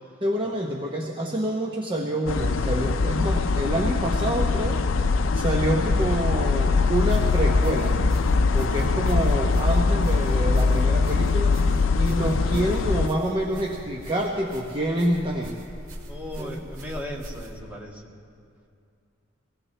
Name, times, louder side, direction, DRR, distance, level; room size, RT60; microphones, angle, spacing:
voice 1, 0.2-4.8 5.3-8.0 8.5-11.6 12.0-15.6 16.4-16.6, right 1 dB, 25° right, -1 dB, 0.9 m, -27 dB
sound 1, 2.3-13.1, left 4 dB, 70° left, 0.5 m, -22 dB
sound 2, 6.9-17.6, equal, 85° right, 1.8 m, -41 dB
voice 2, 16.1-18.1, left 1 dB, 10° right, -3 dB, 1.7 m, -37 dB
24.0 x 18.0 x 3.3 m, 2.5 s
head